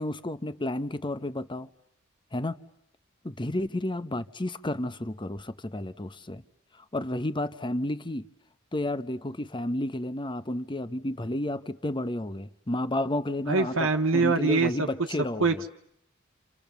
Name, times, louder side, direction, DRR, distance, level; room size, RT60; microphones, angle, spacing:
voice 1, 0.0-1.7 2.3-2.6 3.2-6.4 6.7-8.3 8.7-13.9 14.1-15.6, left 1 dB, 25° left, 1.0 m, -31 dB
voice 2, 13.5-14.9 15.4-15.7, right 3 dB, 75° right, 1.4 m, -24 dB
29.0 x 29.0 x 7.0 m
head